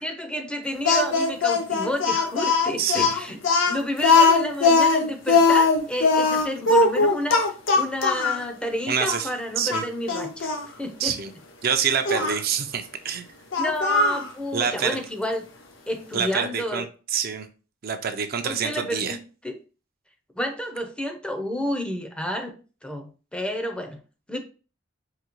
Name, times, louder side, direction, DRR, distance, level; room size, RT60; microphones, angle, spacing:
voice 1, 0.0-3.4 3.7-7.5 7.7-10.5 10.8-11.2 13.6-15.5 15.9-16.9 18.4-19.6 20.3-22.6 22.8-24.0 24.3-24.4, equal, 5° left, 4 dB, 0.5 m, -30 dB
Speech, 0.9-8.4 9.1-9.2 9.7-10.6 12.1-12.4 13.5-14.3, left 4 dB, 70° left, 0.7 m, -20 dB
voice 2, 2.8-3.1 8.9-9.3 9.6-9.8 11.0-11.3 11.6-13.3 14.5-15.0 16.1-16.9 17.1-17.5 17.8-19.2, right 7 dB, 50° right, 6 dB, 0.5 m, -26 dB
4.9 x 2.7 x 2.9 m, 0.35 s
head